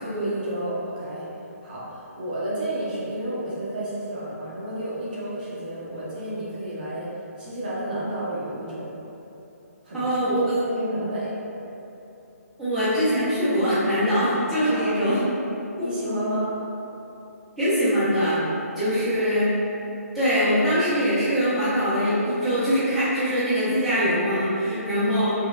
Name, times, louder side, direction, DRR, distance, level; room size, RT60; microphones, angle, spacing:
voice 1, 0.0-1.3 1.6-7.1 7.4-8.9 9.8-10.2 10.6-11.3 14.6-15.0 15.8-16.5 18.9-19.1 24.6-25.1, right 1 dB, 30° right, -9 dB, 0.8 m, -31 dB
voice 2, 9.9-10.5 12.6-15.2 15.8-15.9 17.6-18.4 18.8-19.5 20.1-25.3, equal, ahead, -15 dB, 0.5 m, -22 dB
4.9 x 2.2 x 2.4 m, 2.9 s
hypercardioid pair, 175°, 9 cm